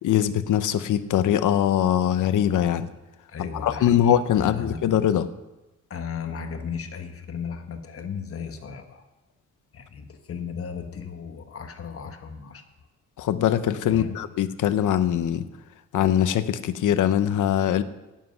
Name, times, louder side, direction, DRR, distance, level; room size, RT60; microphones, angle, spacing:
voice 1, 0.0-2.9 3.4-5.3 13.2-15.4 15.9-17.8, left 10 dB, 85° left, 12 dB, 0.8 m, -22 dB
voice 2, 3.3-4.9 5.9-9.1 9.7-12.6 13.9-14.2, left 6 dB, 50° left, 6 dB, 1.4 m, -35 dB
18.0 x 7.6 x 5.8 m, 1.0 s
wide cardioid pair, 145°, 30 cm